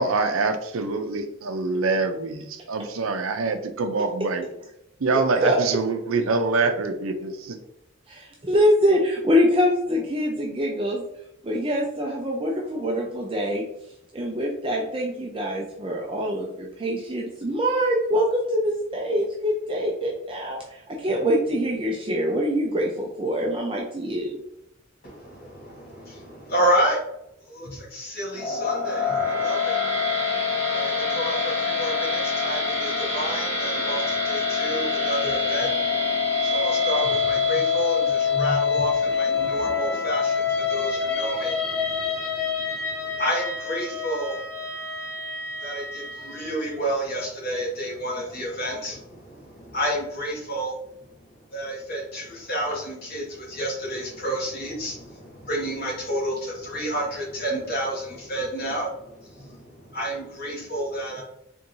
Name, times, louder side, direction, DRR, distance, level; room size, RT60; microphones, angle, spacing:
voice 1, 0.0-2.4 2.7-4.4 5.0-7.3, right 3 dB, 80° right, 7 dB, 0.6 m, -25 dB
voice 2, 5.1-5.6 8.1-11.0 11.4-13.6 14.1-24.3, equal, 25° right, -1 dB, 0.5 m, -24 dB
voice 3, 25.0-27.0 27.5-29.8 30.7-35.8 36.1-44.4 45.6-51.1 51.5-61.2, right 1 dB, 45° left, -4 dB, 1.5 m, -30 dB
sound 1, 28.3-46.6, left 5 dB, 15° left, 1.1 m, -26 dB
4.5 x 3.5 x 2.6 m, 0.81 s
head